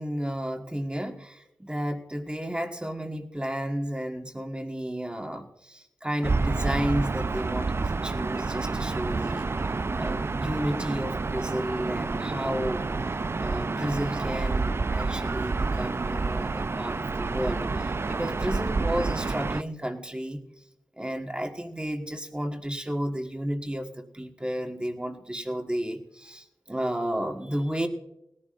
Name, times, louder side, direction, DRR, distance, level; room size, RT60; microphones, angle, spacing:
voice 1, 0.0-9.5 10.0-12.9 13.4-20.4 21.0-27.9, equal, 15° right, 4 dB, 1.5 m, -32 dB
Gull seagull / Ocean, 6.2-19.6, right 3 dB, 35° right, 0.3 m, -29 dB
19.5 x 14.0 x 2.5 m, 0.84 s
wide cardioid pair, 90°, 7 cm